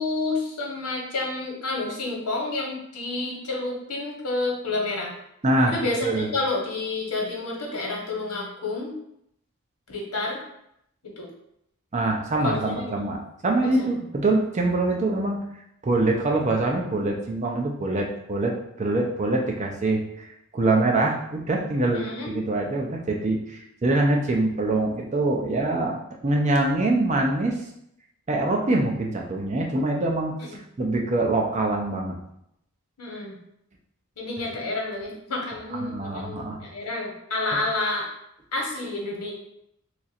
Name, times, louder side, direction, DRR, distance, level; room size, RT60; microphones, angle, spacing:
voice 1, 0.0-5.1 5.7-8.9 9.9-10.4 11.0-11.3 12.4-12.9 13.6-13.7 21.9-22.3 30.4-30.6 33.0-33.4 34.2-38.1 38.5-39.3, left 2 dB, 90° left, -1 dB, 1.0 m, -29 dB
voice 2, 11.9-15.4 15.8-20.3 20.5-22.0 22.3-26.0 26.2-27.6 28.3-30.3 30.8-32.1 35.7-36.6, right 2 dB, 30° right, 0 dB, 0.5 m, -24 dB
3.0 x 2.4 x 4.2 m, 0.76 s
head